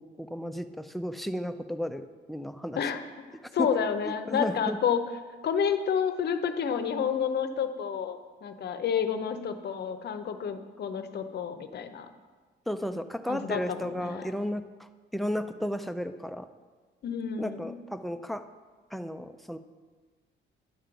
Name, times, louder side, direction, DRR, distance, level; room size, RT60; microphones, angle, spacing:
voice 1, 0.0-2.8 3.6-3.7 4.0-4.8 12.7-14.7 15.1-16.5 17.4-18.4 18.9-19.6, left 1 dB, ahead, 8 dB, 0.4 m, -33 dB
voice 2, 3.5-5.0 5.4-12.1 13.3-14.3 17.0-17.8, left 7 dB, 55° left, 9 dB, 0.7 m, -30 dB
10.0 x 3.7 x 6.9 m, 1.4 s
cardioid pair, 90°, 20 cm